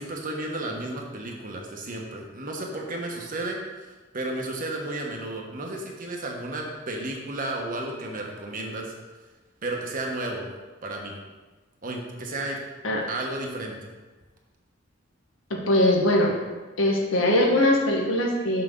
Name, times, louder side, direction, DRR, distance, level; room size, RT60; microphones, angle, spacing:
voice 1, 0.0-8.9 9.6-10.5 10.8-11.2 11.8-12.6 13.1-13.9, right 2 dB, 45° right, 0 dB, 1.1 m, -33 dB
voice 2, 15.5-16.3 16.8-18.6, left 1 dB, 85° left, 0 dB, 1.3 m, -21 dB
6.3 x 6.0 x 3.7 m, 1.2 s
head